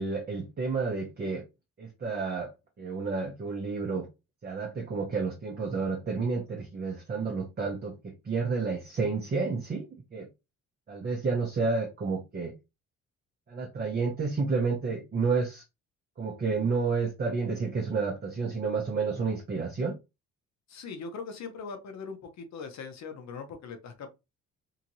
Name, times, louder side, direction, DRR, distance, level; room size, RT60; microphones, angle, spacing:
voice 1, 0.0-1.4 1.8-2.5 2.8-4.1 4.4-10.3 10.9-12.5 13.5-15.6 16.2-20.0, right 4 dB, 30° right, 0.8 m, -30 dB
voice 2, 20.7-24.1, left 5 dB, 65° left, 0.9 m, -40 dB
2.9 x 2.5 x 2.9 m
cardioid pair, 90°, 30 cm